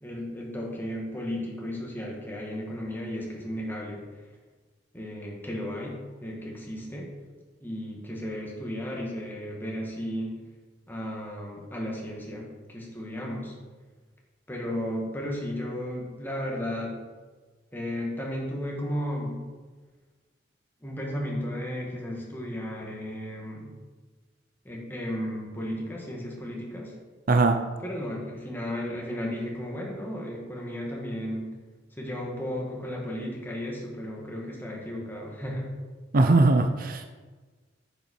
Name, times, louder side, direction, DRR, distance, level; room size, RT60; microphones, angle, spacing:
voice 1, 0.0-4.0 4.9-7.1 7.6-10.3 10.9-13.5 14.5-17.0 17.7-19.4 20.8-23.8 24.6-26.9 27.8-31.5 31.9-35.7, equal, 10° left, -2 dB, 2.0 m, -34 dB
voice 2, 27.3-27.7 36.1-37.0, right 2 dB, 50° right, 5 dB, 0.6 m, -20 dB
9.8 x 7.2 x 4.5 m, 1.3 s
head